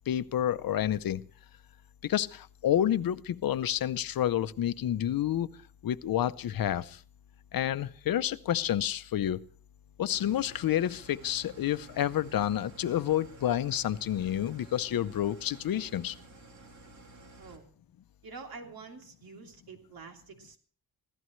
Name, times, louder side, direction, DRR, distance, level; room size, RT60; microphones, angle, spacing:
voice 1, 0.1-1.2 2.0-5.5 5.8-7.0 7.5-9.4 10.0-16.2, left 11 dB, 65° left, 14 dB, 0.7 m, -29 dB
Engine starting / Idling, 10.1-17.6, right 2 dB, 50° right, 3.2 m, -52 dB
voice 2, 18.2-20.6, right 4 dB, 70° right, 3 dB, 3.1 m, -47 dB
25.0 x 16.0 x 3.2 m, 0.43 s
wide cardioid pair, 165°, 37 cm